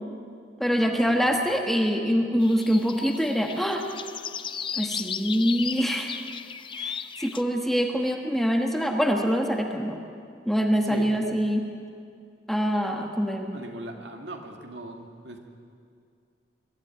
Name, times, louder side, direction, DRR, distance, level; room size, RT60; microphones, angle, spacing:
voice 1, 0.6-3.8 4.7-6.2 6.7-10.0 10.5-11.6 12.5-13.5, equal, ahead, 2 dB, 1.3 m, -24 dB
sound 1, 2.4-7.4, left 7 dB, 25° left, 0.5 m, -35 dB
voice 2, 13.5-15.4, right 1 dB, 65° right, 3 dB, 2.2 m, -39 dB
23.0 x 12.5 x 9.7 m, 2.3 s
head